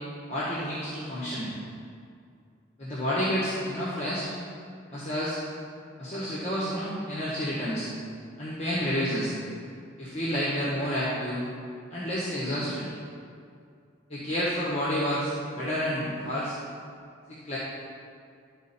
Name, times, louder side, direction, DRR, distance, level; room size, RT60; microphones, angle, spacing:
voice 1, 0.3-1.5 2.8-4.3 4.9-5.4 6.0-7.9 8.4-9.3 10.0-11.4 11.9-12.9 14.1-16.5 17.3-17.6, equal, 30° left, -8 dB, 1.4 m, -29 dB
11.5 x 4.4 x 4.2 m, 2.3 s
head